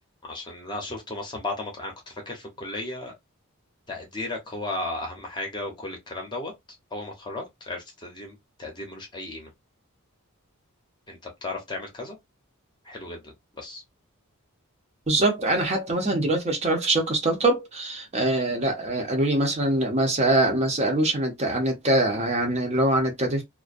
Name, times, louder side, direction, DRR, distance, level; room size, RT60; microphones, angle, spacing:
voice 1, 0.2-3.1 3.9-6.5 6.9-9.5 11.1-12.2 12.8-13.8, left 2 dB, 20° left, 0.7 m, -35 dB
voice 2, 15.1-23.4, right 2 dB, 30° right, 0.6 m, -23 dB
2.3 x 2.1 x 2.4 m
head